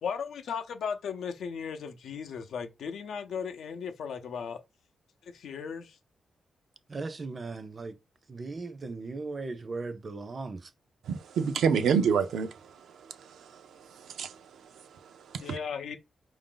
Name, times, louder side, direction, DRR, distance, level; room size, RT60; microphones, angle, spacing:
voice 1, 0.0-4.6 5.3-6.0 15.4-16.0, left 6 dB, 85° left, 0.6 m, -36 dB
voice 2, 6.9-7.9 8.3-10.7, right 3 dB, 40° right, 0.5 m, -37 dB
voice 3, 11.1-12.5 14.0-14.4 15.3-15.5, right 6 dB, 90° right, 0.5 m, -26 dB
4.7 x 2.6 x 3.8 m
cardioid pair, 95°, 0 cm